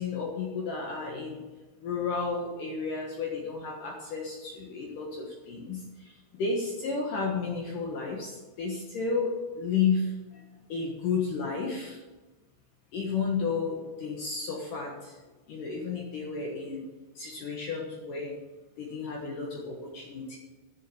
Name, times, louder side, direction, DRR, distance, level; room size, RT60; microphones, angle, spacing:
voice 1, 0.0-1.4 1.8-6.1 6.4-10.4 10.7-12.0 12.9-15.1 15.5-16.9 17.2-18.3 18.8-20.4, left 5 dB, 65° left, -1 dB, 2.2 m, -32 dB
10.5 x 7.4 x 7.1 m, 1.2 s
omnidirectional pair, 5.7 m